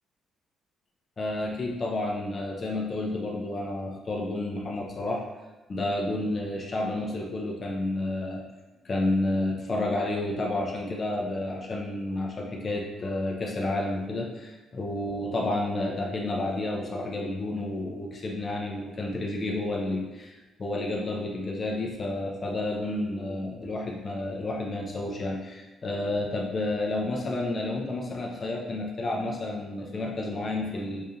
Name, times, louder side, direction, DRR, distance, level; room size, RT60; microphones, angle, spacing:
voice 1, 1.2-5.2 5.7-8.4 8.8-31.0, left 2 dB, 35° left, -2 dB, 0.6 m, -30 dB
4.9 x 2.4 x 2.7 m, 1.1 s
cardioid pair, 90°, 0 cm